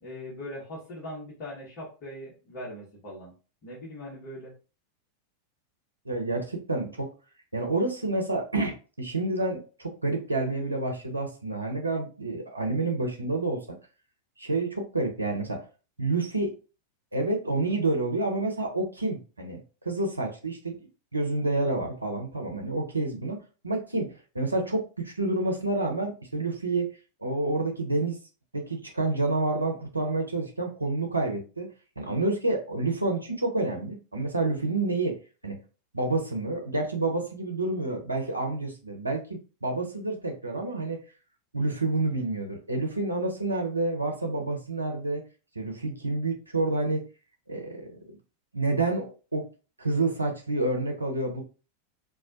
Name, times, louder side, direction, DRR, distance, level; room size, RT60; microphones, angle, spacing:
voice 1, 0.0-3.3 3.6-4.5, left 1 dB, 40° left, -6 dB, 1.0 m, -40 dB
voice 2, 6.0-7.1 7.5-13.6 14.4-15.6 16.0-16.5 17.1-19.6 19.8-20.8 21.1-26.9 27.2-28.2 28.5-31.7 32.0-35.6 35.9-41.0 41.5-45.2 45.6-47.0 47.5-47.9 48.5-49.4 49.8-51.4, right 2 dB, 85° right, 2 dB, 0.6 m, -29 dB
2.3 x 2.1 x 2.5 m, 0.35 s
figure-of-eight pair, 90°, 0 cm